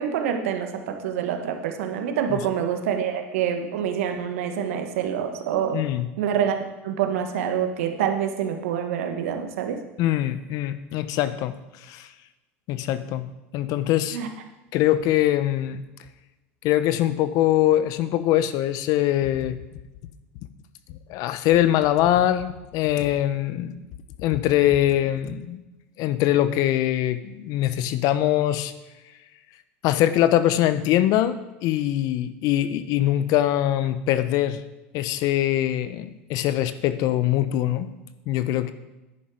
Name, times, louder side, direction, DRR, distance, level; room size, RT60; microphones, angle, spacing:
voice 1, 0.0-5.8 6.2-6.6 6.8-9.8 14.1-14.3, right 8 dB, 75° right, 5 dB, 1.6 m, -26 dB
voice 2, 5.7-6.1 10.0-11.6 11.8-12.1 12.7-13.3 13.5-14.2 14.7-15.8 16.6-19.6 21.1-23.8 24.2-25.6 26.0-28.7 29.8-34.6 34.9-37.9 38.3-38.7, left 13 dB, 60° left, 12 dB, 0.9 m, -22 dB
10.0 x 9.9 x 5.0 m, 1.1 s
hypercardioid pair, 90°, 7 cm